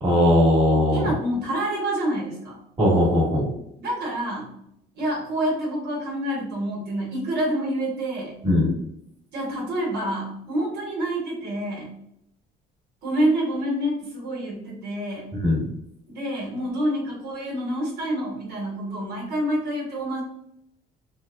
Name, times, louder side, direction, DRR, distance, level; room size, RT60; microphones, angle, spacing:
voice 1, 0.0-1.1 2.8-3.5 8.4-8.7 15.4-15.6, left 1 dB, 35° right, -3 dB, 1.4 m, -19 dB
voice 2, 0.9-2.6 3.8-4.5 4.9-8.4 9.3-11.9 13.0-15.3 16.1-20.2, right 1 dB, 70° right, -3 dB, 1.2 m, -27 dB
3.4 x 2.1 x 2.4 m, 0.75 s
cardioid pair, 110°, 17 cm